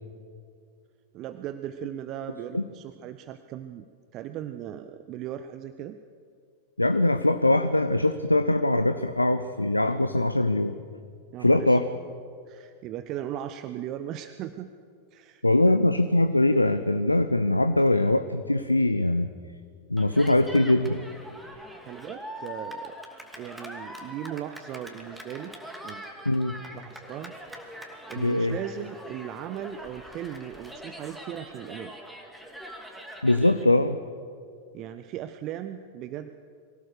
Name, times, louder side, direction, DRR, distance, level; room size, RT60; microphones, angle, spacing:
voice 1, 1.1-3.9 4.1-6.0 11.3-11.8 12.5-14.7 15.1-15.4 21.8-23.0 23.4-25.5 25.8-26.3 26.7-27.3 28.1-31.9 34.7-36.3, right 11 dB, 35° right, 10 dB, 0.7 m, -37 dB
voice 2, 6.8-10.8 11.4-11.8 15.4-19.3 19.9-21.0 26.3-26.6 28.2-28.6 33.2-34.0, left 1 dB, 85° left, 10 dB, 0.6 m, -22 dB
Cheering, 20.0-33.6, equal, 5° right, 2.7 m, -43 dB
24.0 x 16.5 x 6.8 m, 2.2 s
figure-of-eight pair, 90°, 0 cm